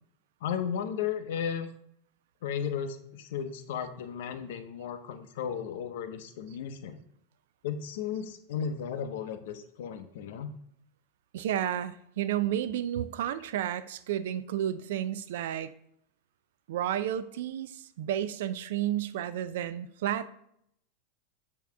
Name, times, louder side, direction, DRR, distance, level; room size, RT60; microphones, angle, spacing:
voice 1, 0.4-1.7 2.4-7.0 7.6-10.5, left 8 dB, 75° left, 9 dB, 0.6 m, -35 dB
voice 2, 11.3-15.7 16.7-20.3, right 11 dB, 75° right, 13 dB, 0.4 m, -31 dB
7.0 x 2.9 x 4.6 m, 0.72 s
supercardioid pair, 150°, 0 cm